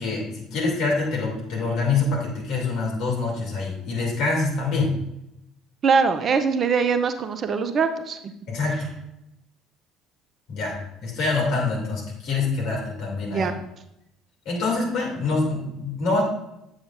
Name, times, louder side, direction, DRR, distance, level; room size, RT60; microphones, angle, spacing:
voice 1, 0.0-4.9 8.5-8.9 10.5-13.5 14.4-16.2, left 3 dB, 60° left, -2 dB, 2.6 m, -25 dB
voice 2, 5.8-8.2 13.3-13.6, right 5 dB, 40° right, 10 dB, 0.5 m, -22 dB
7.9 x 7.2 x 2.5 m, 0.84 s
figure-of-eight pair, 55°, 0 cm